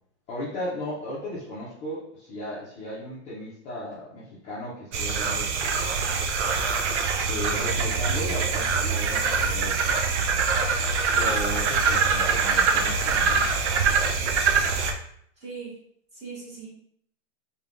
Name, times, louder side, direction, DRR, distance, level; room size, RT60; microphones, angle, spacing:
voice 1, 0.3-5.9 7.3-10.0 11.1-13.5, equal, 20° left, -8 dB, 0.6 m, -35 dB
sound 1, 4.9-14.9, right 5 dB, 70° right, 0.5 m, -24 dB
voice 2, 15.4-15.8 16.1-16.7, right 5 dB, 20° right, -7 dB, 1.2 m, -39 dB
3.3 x 2.3 x 2.5 m, 0.68 s
hypercardioid pair, 140°, 35 cm